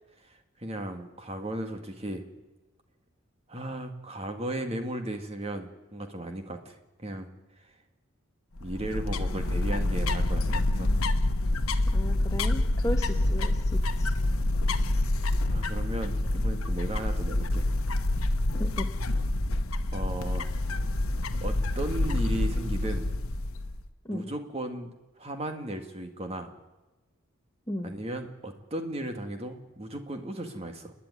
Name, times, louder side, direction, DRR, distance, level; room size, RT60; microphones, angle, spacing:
voice 1, 0.6-2.2 3.5-7.3 8.6-10.9 15.1-17.7 19.9-20.5 21.4-23.1 24.1-26.5 27.8-30.9, right 1 dB, 30° right, 5 dB, 1.9 m, -36 dB
sound 1, 8.6-23.8, left 1 dB, 75° left, 1.1 m, -27 dB
voice 2, 11.9-14.1 18.6-18.9 24.0-24.3 27.7-27.9, equal, 15° left, 3 dB, 1.1 m, -35 dB
29.5 x 10.0 x 9.7 m, 1.1 s
head